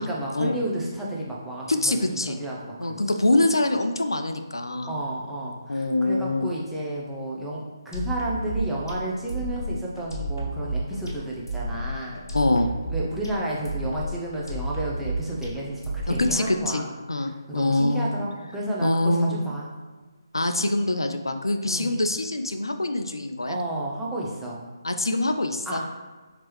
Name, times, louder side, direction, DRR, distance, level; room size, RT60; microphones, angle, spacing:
voice 1, 0.0-3.0 4.9-12.2 12.9-16.9 17.5-19.7 21.6-22.0 23.5-24.6 25.7-25.8, right 1 dB, 5° right, -6 dB, 0.5 m, -31 dB
voice 2, 1.7-2.4 2.8-5.0 5.7-6.4 12.3-12.7 16.1-16.8 17.1-18.1 18.8-19.4 20.3-23.6 24.8-25.8, left 2 dB, 80° left, 6 dB, 0.3 m, -24 dB
sound 1, 7.9-16.6, right 1 dB, 65° left, 1.0 m, -31 dB
4.5 x 2.9 x 3.0 m, 1.3 s
figure-of-eight pair, 145°, 2 cm